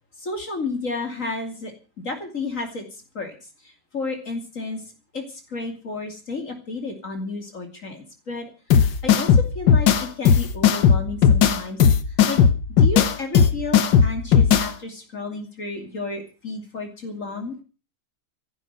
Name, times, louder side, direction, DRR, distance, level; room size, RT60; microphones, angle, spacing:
voice 1, 0.2-1.7 2.0-11.8 12.1-12.4 12.8-17.6, left 3 dB, 45° left, 4 dB, 3.1 m, -32 dB
sound 1, 8.7-14.7, left 7 dB, 85° left, 1.9 m, -16 dB
14.5 x 11.5 x 6.7 m, 0.36 s
omnidirectional pair, 1.9 m